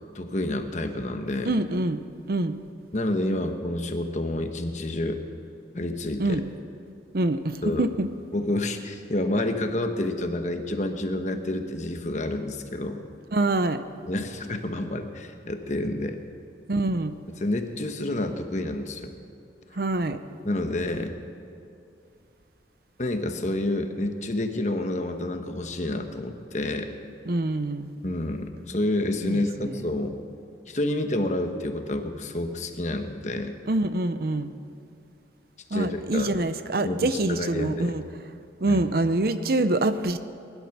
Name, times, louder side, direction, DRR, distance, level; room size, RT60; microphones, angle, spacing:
voice 1, 0.1-1.5 2.9-5.2 5.7-6.4 7.6-7.9 8.3-13.0 14.1-16.2 17.4-19.1 20.4-21.1 23.0-26.9 28.0-30.2 30.7-33.5 35.7-36.3 36.8-37.9 38.6-38.8, left 1 dB, 40° left, 6 dB, 1.1 m, -29 dB
voice 2, 1.5-2.0 2.3-2.5 6.2-6.4 7.1-8.1 13.3-13.8 16.7-17.1 19.7-20.2 27.3-27.9 29.2-29.8 33.7-34.5 35.7-38.0 38.6-40.2, right 2 dB, 55° right, 11 dB, 0.7 m, -25 dB
20.5 x 12.0 x 5.9 m, 2.6 s
head